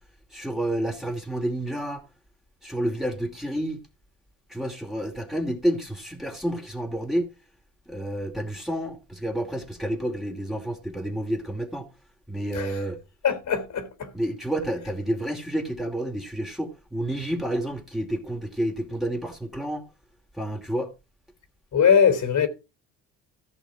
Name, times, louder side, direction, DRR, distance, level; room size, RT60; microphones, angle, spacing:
voice 1, 0.3-2.0 2.6-3.8 4.5-7.3 7.9-11.9 12.3-13.0 14.1-19.8 20.4-20.9, right 1 dB, ahead, 2.7 m, -29 dB
voice 2, 13.2-14.1 21.7-22.5, left 7 dB, 55° left, 3.6 m, -21 dB
15.0 x 6.3 x 4.9 m
hypercardioid pair, 65°, 36 cm